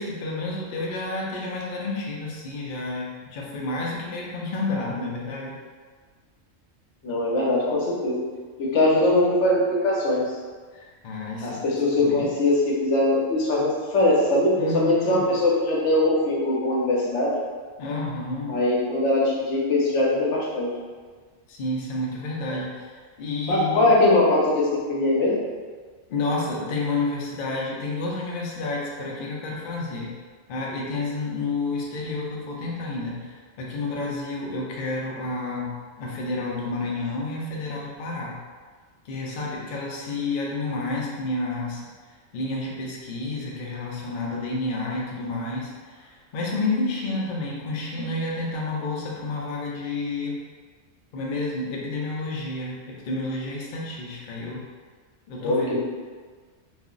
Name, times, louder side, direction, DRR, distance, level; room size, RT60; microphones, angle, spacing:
voice 1, 0.0-5.5 10.7-11.7 12.0-12.3 14.6-15.3 17.8-18.6 21.5-23.9 26.1-30.2 30.5-38.4 39.1-41.8 42.3-50.4 51.1-54.6 55.3-55.8, left 2 dB, 60° left, -3 dB, 0.6 m, -30 dB
voice 2, 7.0-8.2 8.6-10.2 11.4-12.5 12.8-13.7 13.9-17.3 18.5-20.7 23.5-25.3 55.4-55.8, left 2 dB, 75° left, -4 dB, 1.0 m, -21 dB
2.4 x 2.0 x 3.6 m, 1.5 s
omnidirectional pair, 1.2 m